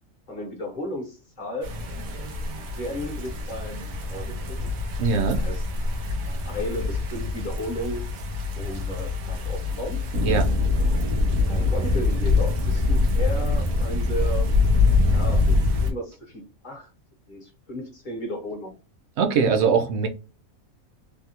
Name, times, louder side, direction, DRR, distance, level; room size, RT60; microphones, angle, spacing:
voice 1, 0.3-1.8 2.5-4.8 5.3-5.6 6.4-8.0 8.5-10.0 11.5-14.5 15.0-16.9 17.3-18.8, left 1 dB, 40° left, 0.9 m, -34 dB
sound 1, 1.6-15.9, left 3 dB, 90° right, 1.2 m, -24 dB
voice 2, 5.0-5.4 10.2-10.5 19.2-20.1, right 5 dB, 65° right, 0.8 m, -21 dB
3.4 x 2.3 x 2.8 m
omnidirectional pair, 1.4 m